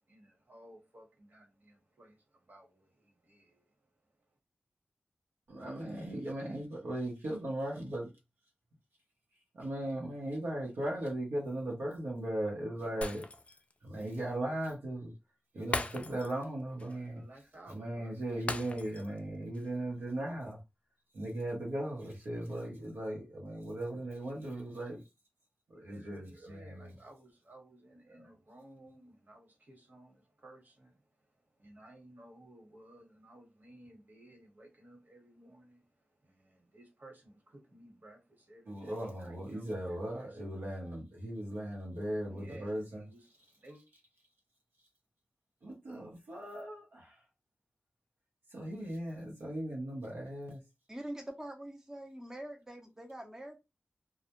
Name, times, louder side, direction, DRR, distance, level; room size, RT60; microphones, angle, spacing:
voice 1, 0.1-4.4 16.9-18.1 25.9-41.0 42.2-43.8, right 1 dB, 55° right, 1.1 m, -57 dB
voice 2, 5.5-8.1 9.5-13.3 13.8-15.1 15.5-17.2 17.7-20.6 21.1-25.0 25.7-26.9 28.2-28.3 38.7-43.0 45.6-47.2 48.5-50.6, right 1 dB, 85° right, 0.7 m, -38 dB
Shatter, 13.0-13.7 14.1-14.2 15.7-16.5 16.8-17.0 18.5-19.2 19.5-19.7, left 2 dB, 35° left, 0.3 m, -38 dB
voice 3, 50.9-53.6, right 1 dB, 15° right, 0.6 m, -44 dB
2.1 x 2.1 x 2.8 m
cardioid pair, 45°, 4 cm